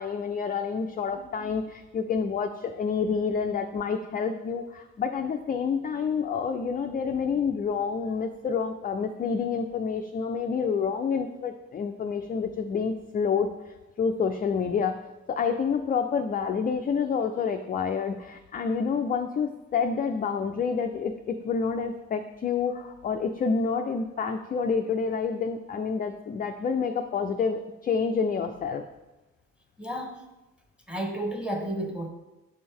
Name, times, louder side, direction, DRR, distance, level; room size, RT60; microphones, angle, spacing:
voice 1, 0.0-13.5 14.0-28.9, left 6 dB, 25° left, 6 dB, 0.3 m, -28 dB
voice 2, 29.8-30.2 30.9-32.1, right 1 dB, ahead, 4 dB, 1.1 m, -32 dB
7.1 x 4.2 x 3.6 m, 1.0 s
hypercardioid pair, 40°, 38 cm